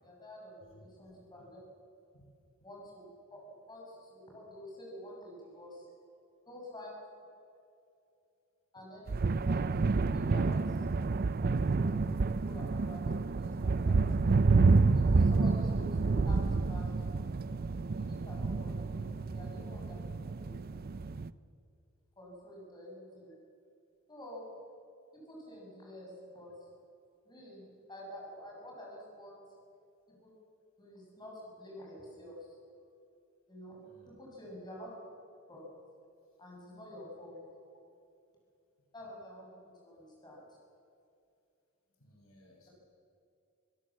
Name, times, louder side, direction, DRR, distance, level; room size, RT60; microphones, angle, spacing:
voice 1, 0.0-1.6 2.6-3.1 3.3-3.8 4.1-5.9 6.5-6.9 8.7-10.9 11.8-11.9 12.4-13.0 13.4-14.0 14.9-16.4 16.7-16.9 17.9-20.0 20.4-20.6 22.2-23.3 24.1-24.5 25.1-26.5 27.3-29.4 30.1-30.2 30.8-32.6 33.5-33.8 34.1-34.9 35.5-35.6 36.4-37.4 38.9-40.6, left 1 dB, 20° left, -3 dB, 7.3 m, -49 dB
voice 2, 0.7-1.2 2.1-2.4 33.8-34.1 42.0-42.7, equal, 75° left, -1 dB, 5.9 m, -61 dB
sound 1, 9.1-21.3, right 3 dB, 45° right, 0.5 m, -29 dB
26.0 x 16.5 x 7.5 m, 2.5 s
head